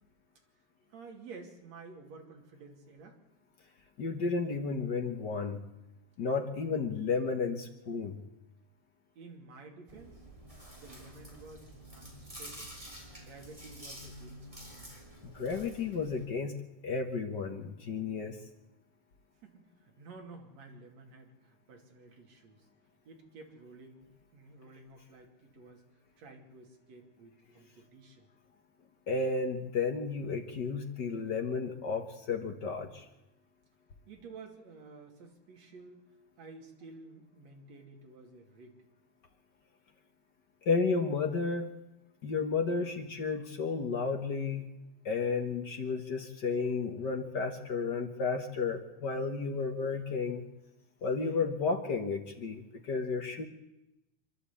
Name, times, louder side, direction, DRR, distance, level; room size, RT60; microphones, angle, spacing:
voice 1, 0.9-3.2 9.2-10.3 10.8-12.7 13.2-14.8 19.4-22.7 23.1-25.8 26.2-28.3 34.1-36.1 36.4-38.8, right 3 dB, 60° right, 2 dB, 3.8 m, -52 dB
voice 2, 4.0-5.6 6.2-8.2 15.2-16.6 16.8-18.4 29.1-33.0 40.6-41.7 42.2-44.7 45.0-50.4 51.0-53.5, left 4 dB, 50° left, 5 dB, 1.4 m, -32 dB
Chewing mastication, 9.9-16.2, right 1 dB, 10° right, 3.4 m, -49 dB
26.0 x 11.5 x 8.5 m, 0.93 s
omnidirectional pair, 3.6 m